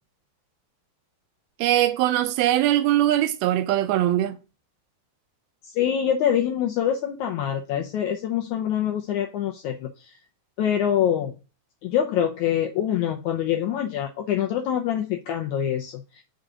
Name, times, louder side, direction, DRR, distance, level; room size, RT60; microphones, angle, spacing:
voice 1, 1.6-4.3, right 13 dB, 85° right, 2.5 m, -21 dB
voice 2, 5.8-10.1 10.6-11.3 11.8-16.2, left 9 dB, 85° left, 1.7 m, -25 dB
7.9 x 3.9 x 4.8 m
omnidirectional pair, 4.2 m